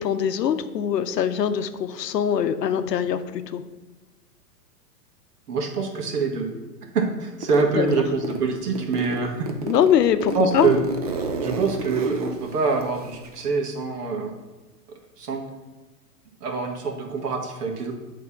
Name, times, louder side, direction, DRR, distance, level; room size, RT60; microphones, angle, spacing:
voice 1, 0.0-3.7 7.8-7.9 9.6-10.7, left 9 dB, 90° left, 11 dB, 0.7 m, -23 dB
voice 2, 5.5-6.5 6.9-9.5 10.3-10.8 11.4-14.3 15.2-15.4 16.4-17.9, right 4 dB, 70° right, 3 dB, 1.7 m, -25 dB
Zipper (clothing), 7.4-8.4 8.8-13.5, right 3 dB, 30° right, 0.3 m, -30 dB
7.7 x 3.6 x 5.6 m, 1.2 s
hypercardioid pair, 135°, 48 cm